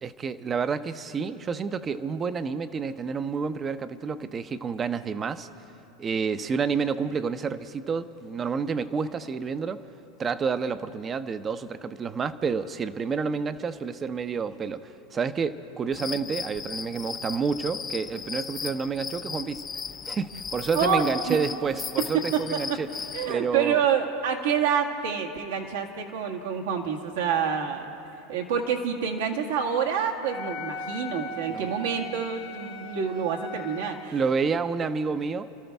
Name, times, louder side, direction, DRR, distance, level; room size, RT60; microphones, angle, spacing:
voice 1, 0.0-5.5 6.0-9.8 10.2-19.6 20.1-22.9 23.3-23.8 31.5-31.7 34.1-35.6, right 5 dB, 25° right, 13 dB, 0.6 m, -29 dB
sound 1, 15.9-23.3, left 6 dB, 25° left, 0.4 m, -37 dB
voice 2, 20.7-21.4 22.1-22.6 23.1-27.9 28.3-34.1, right 7 dB, 80° right, 2 dB, 1.5 m, -27 dB
Wind instrument woodwind instrument, 30.2-34.1, left 1 dB, 55° left, 1.2 m, -38 dB
28.5 x 13.0 x 3.5 m, 2.9 s
hypercardioid pair, 105°, 0 cm